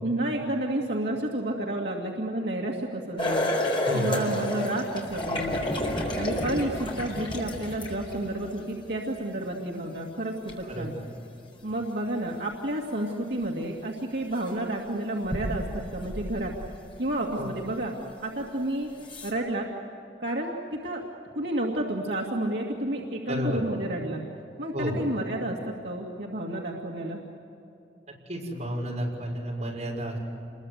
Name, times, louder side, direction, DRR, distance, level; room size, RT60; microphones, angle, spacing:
voice 1, 0.0-3.5 3.9-5.6 6.2-10.9 11.6-16.5 17.0-17.9 18.2-18.9 19.2-19.7 20.2-21.0 21.3-24.2 24.6-27.2, right 1 dB, 70° right, -2 dB, 2.2 m, -30 dB
sound 1, 3.2-8.5 10.5-10.6 13.4-13.5 14.3-14.6 15.2-16.9 17.4-17.5 18.4-18.5 19.0-19.3, left 1 dB, 30° left, 4.5 m, -30 dB
voice 2, 3.9-4.2 10.7-10.9 17.4-17.5 23.3-23.6 24.7-25.0 28.3-30.2, equal, 40° right, -2 dB, 6.4 m, -31 dB
28.0 x 22.0 x 8.1 m, 2.9 s
head